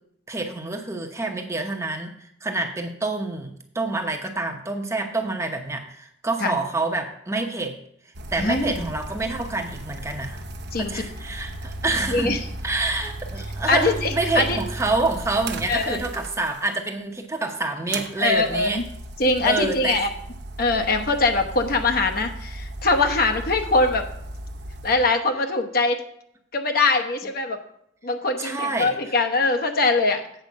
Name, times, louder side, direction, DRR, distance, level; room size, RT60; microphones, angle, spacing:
voice 1, 0.3-7.8 8.3-10.4 10.8-12.4 12.6-18.8 19.4-20.0 28.4-28.9, right 2 dB, 15° right, 4 dB, 0.9 m, -27 dB
sound 1, 8.1-16.8 17.9-25.0, right 1 dB, 60° right, 0.8 m, -35 dB
voice 2, 8.4-8.9 10.7-11.0 12.1-12.4 13.7-14.6 15.7-16.0 18.2-18.8 19.2-20.1 20.6-24.0 24.8-26.0 26.5-27.6 28.0-30.2, left 3 dB, 50° left, 5 dB, 1.0 m, -22 dB
8.0 x 5.1 x 7.2 m, 0.72 s
head